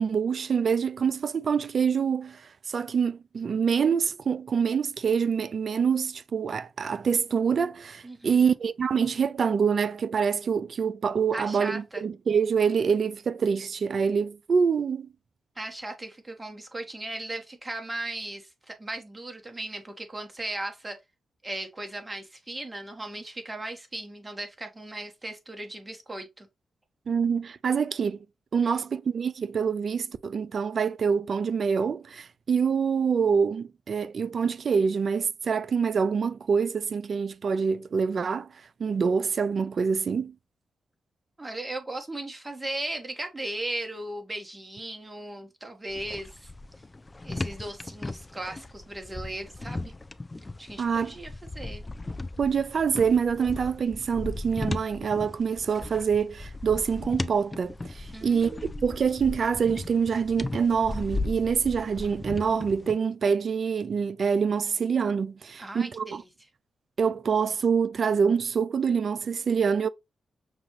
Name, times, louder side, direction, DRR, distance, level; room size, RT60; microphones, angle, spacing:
voice 1, 0.0-2.4 2.7-15.1 27.1-28.2 28.5-38.5 38.8-40.3 50.8-51.1 52.4-66.2 67.0-69.9, right 6 dB, 60° right, 0.4 m, -26 dB
voice 2, 8.0-8.5 11.3-12.0 15.6-21.0 21.4-26.5 28.6-28.9 41.4-46.5 47.2-49.9 50.6-51.8 58.1-58.9 65.6-66.2, right 1 dB, 25° right, 1.3 m, -37 dB
sound 1, 45.9-63.0, left 2 dB, 30° left, 0.4 m, -37 dB
6.1 x 2.4 x 3.1 m
supercardioid pair, 50°, 0 cm